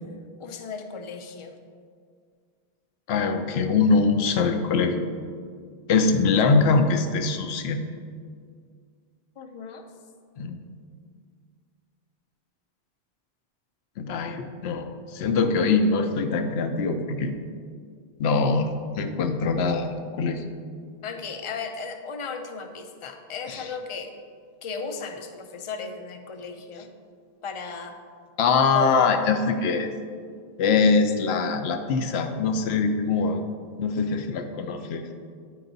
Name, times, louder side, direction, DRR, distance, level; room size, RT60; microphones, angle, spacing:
voice 1, 0.4-1.6 9.4-9.8 21.0-24.1 24.6-26.9 27.4-28.0 28.7-29.0, left 4 dB, 40° left, 5 dB, 0.5 m, -35 dB
voice 2, 3.1-5.0 5.9-7.8 10.4-10.6 14.0-14.9 15.1-17.3 18.2-20.4 23.5-23.7 28.4-29.9 30.6-33.4 33.8-35.1, left 4 dB, 75° left, 7 dB, 0.9 m, -23 dB
9.9 x 4.7 x 4.0 m, 2.1 s
omnidirectional pair, 1.1 m